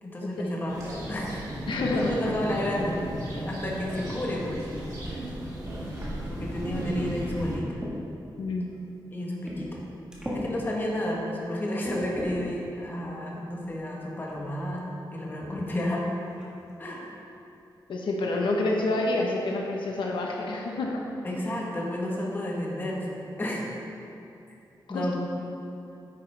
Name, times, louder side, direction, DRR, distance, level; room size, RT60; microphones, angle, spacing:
voice 1, 0.0-0.8 1.1-1.4 1.9-3.0 3.3-4.6 6.3-7.8 9.1-9.8 10.3-14.8 15.1-16.0 16.8-17.1 21.2-23.6 24.9-25.1, left 1 dB, 25° left, -3 dB, 1.3 m, -31 dB
sound 1, 0.7-7.6, equal, 40° right, 2.2 m, -35 dB
voice 2, 1.7-2.2 8.3-8.7 17.9-21.0 24.9-25.1, left 2 dB, 75° left, -1 dB, 1.1 m, -28 dB
sound 2, 7.1-8.0 8.7-8.8 9.4-9.8 10.1-10.4 11.1-11.2 11.8-12.5 13.6-13.7 14.2-14.5 15.4-15.6 15.9-16.0 16.4-16.7, equal, 10° right, 1.6 m, -38 dB
9.7 x 9.2 x 3.4 m, 2.8 s
wide cardioid pair, 175°, 8 cm